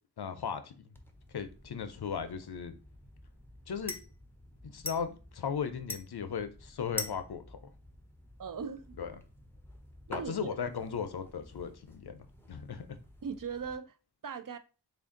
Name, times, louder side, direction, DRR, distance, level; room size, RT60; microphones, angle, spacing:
voice 1, 0.2-0.8 1.3-2.7 3.7-3.9 4.6-7.6 9.0-9.1 10.1-12.9, left 6 dB, 60° left, 0.6 m, -37 dB
sound 1, 0.9-13.7, left 2 dB, 5° left, 0.6 m, -47 dB
voice 2, 8.4-9.0 10.1-10.6 13.2-14.0 14.2-14.6, right 6 dB, 50° right, 0.5 m, -39 dB
3.4 x 2.5 x 3.7 m
wide cardioid pair, 50°, 43 cm